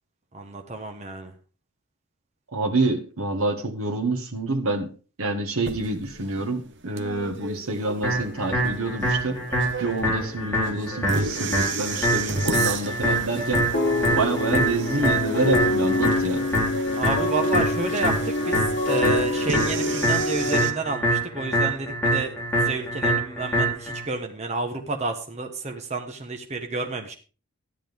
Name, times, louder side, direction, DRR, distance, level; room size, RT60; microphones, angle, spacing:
voice 1, 0.3-1.3 17.0-27.1, right 3 dB, 30° right, 3 dB, 1.2 m, -30 dB
voice 2, 2.5-4.9 5.2-9.4 9.8-13.7 14.1-16.5, right 2 dB, 80° right, 3 dB, 1.4 m, -27 dB
sound 1, 5.6-20.7, right 3 dB, 55° right, 1.1 m, -33 dB
sound 2, 8.0-24.0, equal, 10° left, 4.5 m, -25 dB
sound 3, 13.7-20.6, left 1 dB, 35° left, 4.8 m, -26 dB
13.0 x 10.0 x 3.5 m, 0.36 s
head